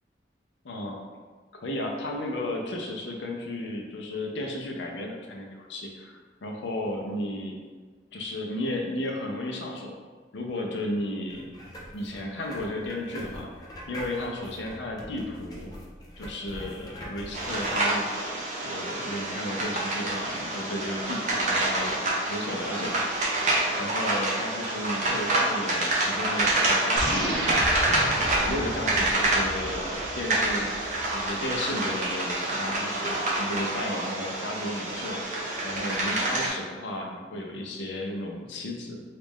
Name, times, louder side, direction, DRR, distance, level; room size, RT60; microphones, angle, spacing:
voice 1, 0.6-1.0 1.6-7.6 8.1-10.0 10.3-11.5 11.9-15.7 16.2-18.1 18.6-23.1 23.7-27.4 27.8-30.9 31.1-35.3 35.6-39.0, left 1 dB, 75° left, 1 dB, 0.5 m, -34 dB
sound 1, 11.3-17.8, left 1 dB, 20° left, 0.4 m, -42 dB
sound 2, 17.3-36.5, right 2 dB, 40° right, 0.5 m, -27 dB
sound 3, 27.0-31.6, right 1 dB, 75° right, 0.8 m, -32 dB
3.0 x 2.4 x 3.5 m, 1.4 s
head